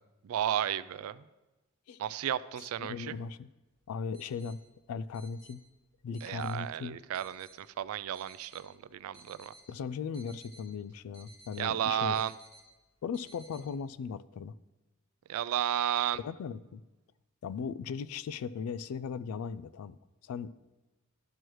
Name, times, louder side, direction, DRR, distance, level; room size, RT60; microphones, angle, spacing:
voice 1, 0.2-1.2 2.0-3.2 6.2-9.5 11.6-12.3 15.3-16.2, right 10 dB, 75° right, 0.3 m, -33 dB
voice 2, 2.5-3.5 3.9-4.6 4.9-5.6 6.0-7.0 9.7-12.3 13.0-14.5 16.1-16.8 17.4-20.6, left 6 dB, 85° left, 0.3 m, -38 dB
sound 1, 3.6-14.0, right 2 dB, 25° left, 2.7 m, -58 dB
12.5 x 6.3 x 3.1 m
head